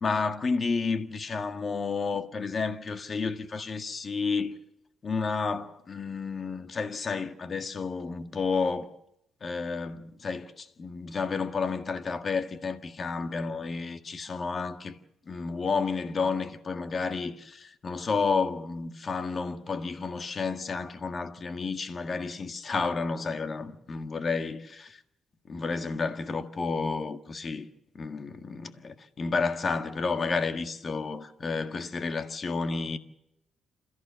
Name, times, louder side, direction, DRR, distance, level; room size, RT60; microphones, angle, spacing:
voice 1, 0.0-4.6 5.0-9.0 9.4-15.0 15.3-25.0 25.5-27.7 28.0-33.0, left 4 dB, 40° left, 1.7 m, -31 dB
28.0 x 14.5 x 7.5 m
cardioid pair, 90°, 0 cm